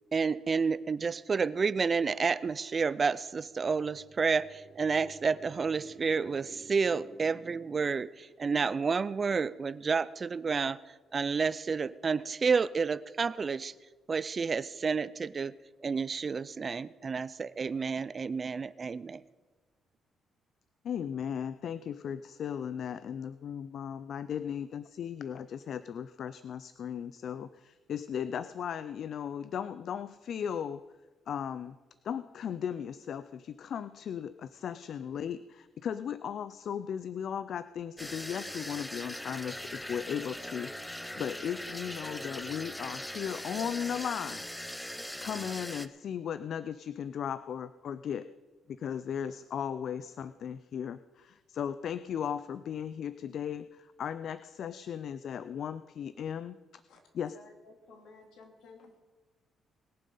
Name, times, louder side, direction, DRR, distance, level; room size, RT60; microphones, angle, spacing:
voice 1, 0.1-10.8 11.1-13.7 14.1-15.5 15.8-19.2, right 5 dB, 40° right, 18 dB, 0.5 m, -30 dB
voice 2, 20.8-30.8 31.3-31.8 32.0-44.5 45.2-48.3 48.7-56.8 57.1-57.4, left 8 dB, 65° left, 14 dB, 0.4 m, -37 dB
sound 1, 38.0-45.9, left 1 dB, 5° left, 0.7 m, -40 dB
voice 3, 57.3-59.0, left 3 dB, 80° left, 4 dB, 2.3 m, -54 dB
21.0 x 7.5 x 5.5 m, 1.2 s
cardioid pair, 90°, 0 cm